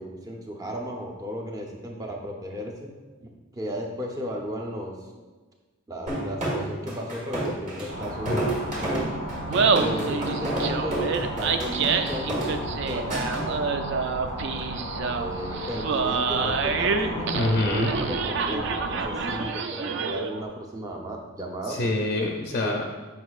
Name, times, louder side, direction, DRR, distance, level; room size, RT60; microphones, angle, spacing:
voice 1, 0.0-2.9 3.2-5.0 5.9-8.5 8.8-9.2 9.7-13.1 13.4-13.9 15.1-21.9 22.2-22.3 22.6-22.8, equal, 15° right, 0 dB, 0.7 m, -34 dB
sound 1, 6.1-13.5, right 1 dB, 35° right, 1.4 m, -31 dB
sound 2, 7.9-19.5, equal, 90° right, 1.5 m, -34 dB
Laughter, 9.4-20.4, right 5 dB, 55° right, 0.3 m, -27 dB
voice 2, 17.0-17.9 21.7-22.8, left 1 dB, 40° left, 1 dB, 0.5 m, -26 dB
8.0 x 5.4 x 2.4 m, 1.3 s
head